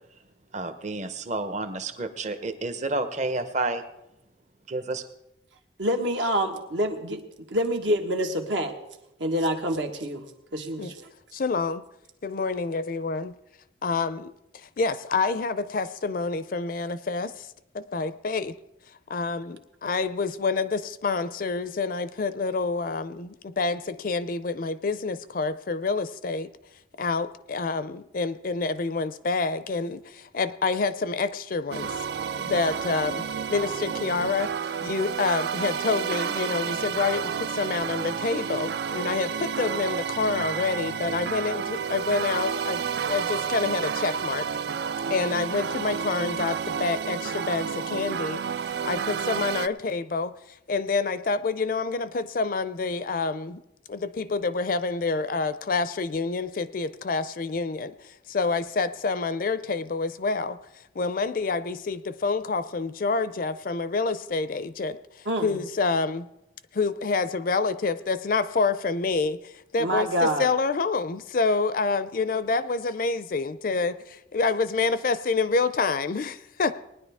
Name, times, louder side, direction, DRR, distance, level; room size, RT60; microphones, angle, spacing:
voice 1, 0.5-3.8 4.7-5.0, right 2 dB, 40° right, 9 dB, 0.8 m, -30 dB
voice 2, 5.8-7.2 7.5-8.7 9.2-11.1 65.2-65.6 69.8-70.5, equal, 75° right, 4 dB, 1.4 m, -27 dB
voice 3, 11.3-11.8 12.2-13.3 13.8-17.5 17.7-18.6 19.1-26.5 27.0-32.1 32.4-33.2 33.5-34.5 34.8-42.8 43.1-44.5 45.1-53.6 53.9-60.6 61.0-65.0 65.4-66.3 66.7-76.7, left 4 dB, 45° left, 14 dB, 0.5 m, -27 dB
sound 1, 31.7-49.7, right 7 dB, 60° right, 0.3 m, -30 dB
19.0 x 10.5 x 3.5 m, 0.87 s
head